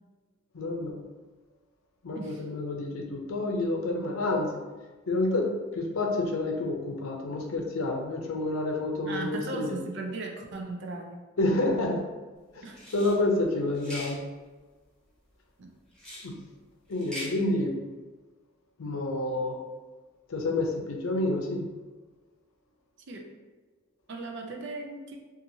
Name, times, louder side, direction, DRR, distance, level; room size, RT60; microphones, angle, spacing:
voice 1, 0.5-0.9 2.0-4.5 5.1-9.8 11.4-12.0 12.6-12.7 12.9-14.2 16.2-16.3 16.9-17.8 18.8-19.6 20.3-21.7, left 2 dB, 85° left, 1 dB, 0.5 m, -29 dB
voice 2, 9.1-11.3 12.6-12.8 15.6-15.7 23.1-23.3 24.1-25.2, right 2 dB, 60° right, 3 dB, 0.4 m, -37 dB
sound 1, 12.7-13.2 13.7-14.1 15.9-16.3 16.9-17.3, left 1 dB, 5° left, 1.0 m, -40 dB
2.8 x 2.4 x 2.6 m, 1.3 s
head